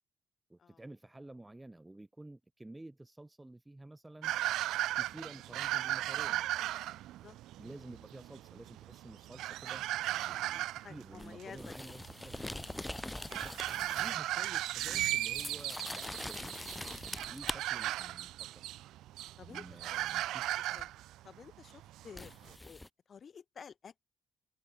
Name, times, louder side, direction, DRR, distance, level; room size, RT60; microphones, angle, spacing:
voice 1, 0.5-4.3 4.9-6.4 7.6-9.8 10.3-12.3 13.3-13.5 13.9-16.6 17.3-18.5 19.5-20.8, right 2 dB, 10° right, 2.4 m, -51 dB
sound 1, 4.2-22.5, right 15 dB, 90° right, 0.3 m, -37 dB
voice 2, 10.1-11.7 12.2-12.3 12.7-13.0 19.4-20.0 20.7-20.9 21.2-22.8 23.1-23.9, left 6 dB, 50° left, 1.0 m, -52 dB
sound 2, 11.2-14.2 14.5-17.6 20.8-20.9 22.2-22.9, left 1 dB, 10° left, 0.6 m, -43 dB
open air
cardioid pair, 90°, 0 cm